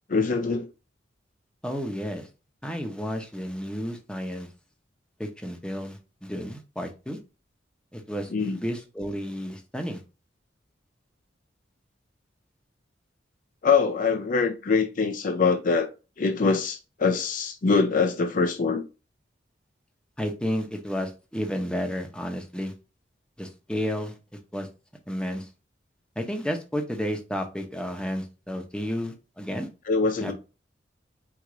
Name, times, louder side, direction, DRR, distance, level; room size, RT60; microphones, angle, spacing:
voice 1, 0.1-0.7 8.3-8.6 13.6-15.9 16.2-18.8 29.9-30.3, left 4 dB, 45° left, 0.5 m, -23 dB
voice 2, 1.6-2.3 2.6-4.5 5.2-7.2 7.9-10.0 20.2-22.7 23.4-24.1 24.5-24.7 25.1-25.5 26.2-29.7 30.2-30.3, equal, 5° left, 0.8 m, -32 dB
4.7 x 2.6 x 3.8 m
head